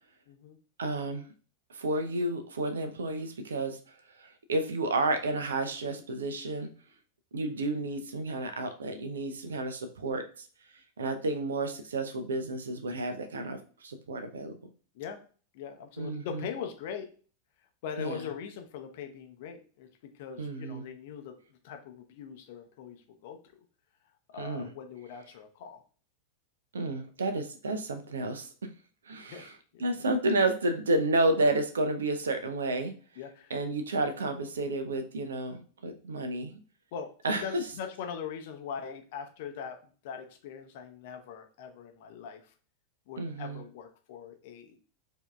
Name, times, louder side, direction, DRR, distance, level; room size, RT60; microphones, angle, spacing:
voice 1, 0.3-0.6 14.9-15.2 15.5-17.1 17.8-19.9 20.1-21.3 21.6-23.4 24.3-25.8 29.2-29.8 33.2-33.6 36.9-42.5 43.1-44.8, left 7 dB, 50° left, 6 dB, 0.6 m, -41 dB
voice 2, 0.8-1.3 1.7-3.8 4.2-6.7 7.3-10.5 11.0-14.6 16.0-16.5 18.0-18.2 20.4-20.9 24.4-24.7 26.7-28.7 29.1-29.5 29.8-32.9 33.5-36.6 37.2-37.6 43.2-43.6, right 2 dB, 70° right, 8 dB, 0.5 m, -31 dB
4.5 x 2.8 x 2.2 m, 0.39 s
figure-of-eight pair, 90°, 0 cm